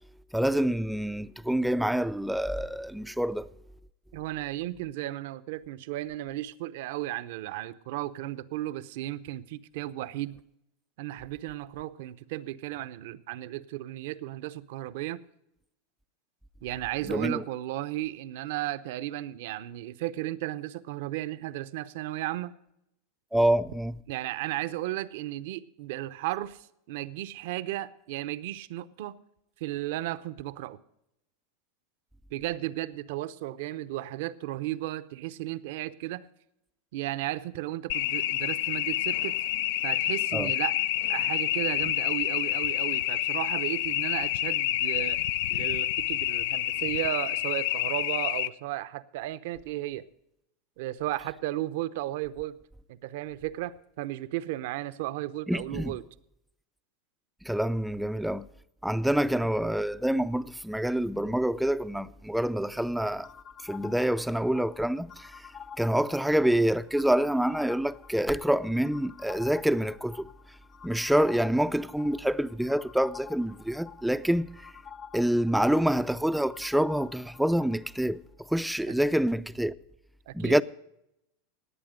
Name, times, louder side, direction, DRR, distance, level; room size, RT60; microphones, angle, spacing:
voice 1, 0.3-3.5 17.1-17.4 23.3-23.9 40.3-40.5 55.5-55.9 57.5-58.5 58.8-63.3 63.6-65.5 65.8-70.3 70.8-74.7 75.1-78.2 78.5-79.7 80.3-80.6, right 1 dB, ahead, 0.4 m, -27 dB
voice 2, 4.1-10.4 11.0-15.2 16.6-22.5 24.1-29.1 29.6-30.8 32.3-36.3 36.9-39.4 39.8-40.7 41.1-45.2 45.5-50.0 50.8-52.6 52.9-56.0 80.3-80.6, right 15 dB, 70° right, 0.7 m, -34 dB
sound 1, 37.9-48.5, left 14 dB, 70° left, 0.4 m, -28 dB
sound 2, 63.2-78.0, left 7 dB, 35° left, 0.7 m, -48 dB
18.0 x 8.6 x 5.1 m
supercardioid pair, 115°, 0 cm